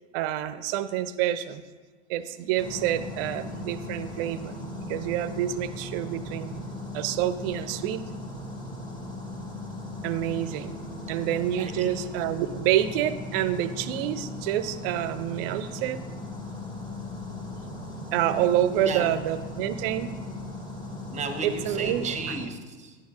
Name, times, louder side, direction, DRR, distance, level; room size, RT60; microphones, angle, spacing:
voice 1, 0.1-1.6 2.1-4.6 4.9-6.5 6.9-8.0 10.0-10.8 11.1-16.0 18.1-20.1 21.4-22.1, right 11 dB, 55° right, 14 dB, 0.6 m, -27 dB
sound 1, 2.6-22.5, left 1 dB, 15° left, 1.7 m, -38 dB
voice 2, 11.6-11.9 18.8-19.1 21.1-23.0, right 4 dB, 20° right, 6 dB, 1.0 m, -34 dB
11.0 x 9.3 x 2.5 m, 1.4 s
hypercardioid pair, 95°, 35 cm